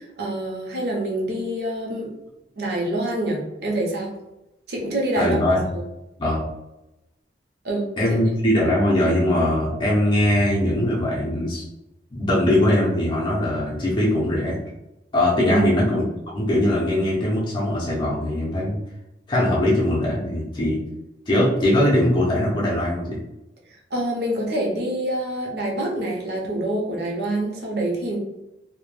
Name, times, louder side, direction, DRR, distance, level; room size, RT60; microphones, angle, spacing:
voice 1, 0.0-2.1 2.6-4.1 4.7-5.4 5.7-5.8 7.6-7.9 15.4-15.7 23.9-28.2, right 1 dB, 60° right, -1 dB, 0.6 m, -26 dB
voice 2, 5.2-5.8 6.2-6.5 8.0-11.6 12.1-14.6 15.1-16.0 16.3-18.8 19.3-20.8 21.3-23.2, left 1 dB, 25° left, -6 dB, 0.5 m, -21 dB
2.2 x 2.1 x 3.1 m, 0.94 s
head